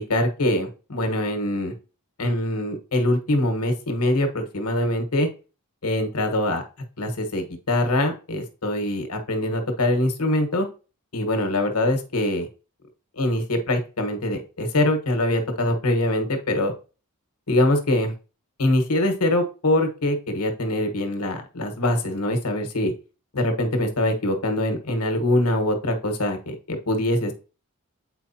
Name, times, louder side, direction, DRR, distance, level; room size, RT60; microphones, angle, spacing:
voice 1, 0.0-1.7 2.2-5.3 5.8-6.6 7.0-10.7 11.1-12.5 13.2-16.7 17.5-18.1 18.6-22.9 23.3-27.3, left 1 dB, 75° left, 5 dB, 1.3 m, -23 dB
7.9 x 4.7 x 2.8 m, 0.34 s
head